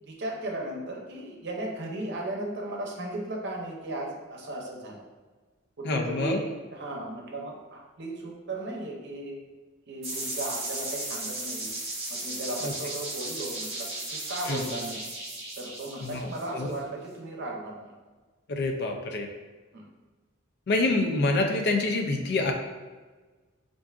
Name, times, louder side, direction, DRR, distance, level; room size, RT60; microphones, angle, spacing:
voice 1, 0.0-5.0 5.8-9.4 9.9-11.7 12.1-15.0 15.6-17.9 19.7-19.9, right 1 dB, 60° right, -1 dB, 0.7 m, -36 dB
voice 2, 5.8-6.4 12.6-12.7 14.5-14.6 16.0-16.7 18.5-19.3 20.7-22.5, left 2 dB, 55° left, 3 dB, 0.4 m, -27 dB
sound 1, 10.0-16.7, right 2 dB, 30° right, 1.2 m, -35 dB
4.5 x 2.6 x 2.4 m, 1.3 s
head